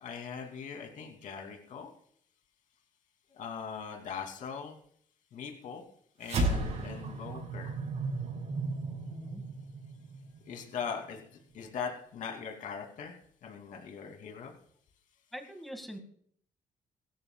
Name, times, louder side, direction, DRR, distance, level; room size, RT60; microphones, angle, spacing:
voice 1, 0.0-1.9 3.3-4.8 5.3-5.8 6.2-7.7 10.5-11.2 11.5-13.1 13.4-14.5, left 6 dB, 65° left, 2 dB, 2.8 m, -40 dB
sound 1, 6.2-10.9, right 2 dB, 55° right, 6.3 m, -34 dB
voice 2, 9.1-9.4 15.3-16.0, equal, ahead, 4 dB, 2.0 m, -43 dB
23.0 x 13.5 x 2.4 m, 0.63 s
cardioid pair, 170°, 14 cm